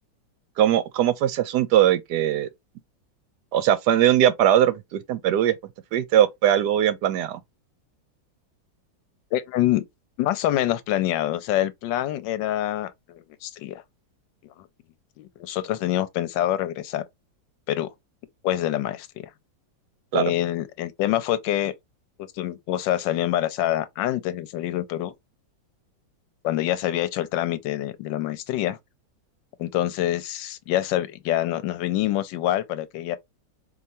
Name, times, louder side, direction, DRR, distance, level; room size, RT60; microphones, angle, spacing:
voice 1, 0.6-2.5 3.5-5.5 5.9-7.4 20.1-20.3, right 11 dB, 75° right, 1.1 m, -20 dB
voice 2, 9.3-9.8 10.2-13.8 15.2-17.0 17.7-17.9 18.4-19.1 20.1-21.7 22.4-25.1 26.4-28.8 29.6-33.2, left 13 dB, 85° left, 1.3 m, -26 dB
4.7 x 2.9 x 2.7 m
omnidirectional pair, 2.0 m